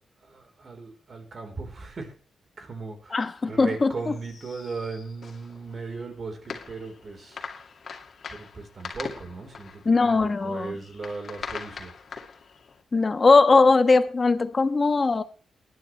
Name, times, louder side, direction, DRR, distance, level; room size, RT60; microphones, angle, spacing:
voice 1, 0.2-2.1 2.6-7.4 8.3-11.9, right 4 dB, 45° right, 4.1 m, -37 dB
voice 2, 3.1-3.9 9.8-10.8 12.9-15.2, left 3 dB, 35° left, 1.2 m, -20 dB
sound 1, 3.7-12.8, left 5 dB, 60° left, 2.3 m, -42 dB
20.0 x 11.5 x 3.3 m
cardioid pair, 90°, 0 cm